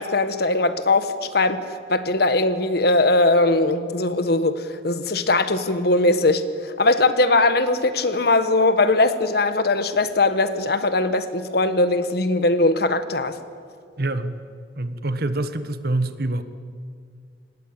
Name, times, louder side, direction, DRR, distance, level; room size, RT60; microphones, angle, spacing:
voice 1, 0.0-1.6 1.9-13.3, left 2 dB, 60° left, 11 dB, 1.5 m, -20 dB
voice 2, 14.0-14.4 14.8-16.4, right 2 dB, 60° right, 11 dB, 1.4 m, -25 dB
26.5 x 20.0 x 8.8 m, 2.3 s
head